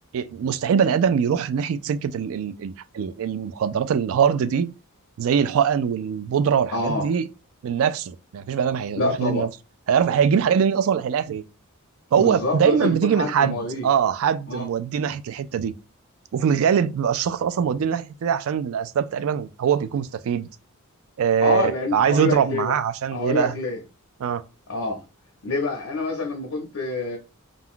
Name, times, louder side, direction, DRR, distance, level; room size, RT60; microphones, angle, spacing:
voice 1, 0.1-4.7 5.2-7.2 7.6-9.5 9.9-11.4 12.1-15.7 16.3-20.5 21.2-23.6 24.2-24.4, right 7 dB, 65° right, 0.3 m, -22 dB
voice 2, 6.7-7.1 9.0-9.5 12.1-13.9 14.5-14.7 21.4-22.8 23.1-23.8 24.7-25.0 25.4-27.2, left 3 dB, 65° left, 0.7 m, -26 dB
2.5 x 2.3 x 3.6 m
head